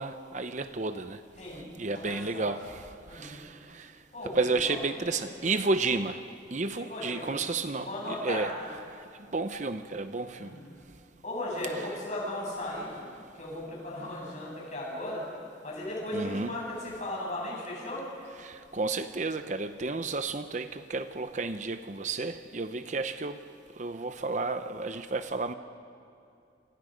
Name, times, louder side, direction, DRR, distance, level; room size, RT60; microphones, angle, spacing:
voice 1, 0.0-1.2 1.8-3.9 4.3-6.2 6.5-8.5 9.3-10.5 16.1-16.5 18.4-23.4 23.8-25.5, right 3 dB, 40° right, 9 dB, 0.7 m, -32 dB
voice 2, 1.4-2.5 3.0-3.4 4.1-4.7 5.0-5.5 6.8-7.3 7.8-8.5 10.4-10.8 11.2-13.1 13.4-15.3 15.6-18.1, left 1 dB, 40° left, -3 dB, 7.9 m, -37 dB
28.5 x 27.5 x 5.2 m, 2.6 s
head